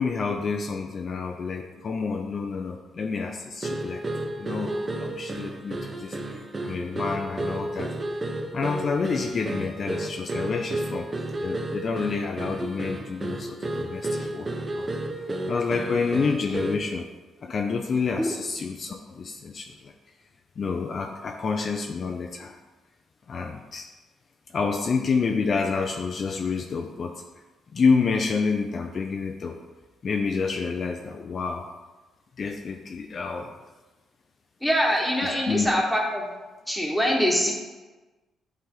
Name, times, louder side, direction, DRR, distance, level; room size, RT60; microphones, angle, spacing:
voice 1, 0.0-4.0 4.4-7.9 8.5-11.1 11.4-14.9 15.5-17.1 17.4-19.9 20.6-22.6 23.3-23.9 24.5-27.3 27.7-29.6 30.0-31.7 32.4-33.5 35.2-35.7, left 5 dB, 45° left, 3 dB, 0.5 m, -28 dB
sound 1, 3.6-16.9, right 1 dB, 30° right, 0.7 m, -32 dB
voice 2, 34.6-36.2 36.7-37.5, equal, ahead, -1 dB, 1.4 m, -23 dB
9.4 x 3.3 x 3.8 m, 1.2 s
cardioid pair, 90°, 0 cm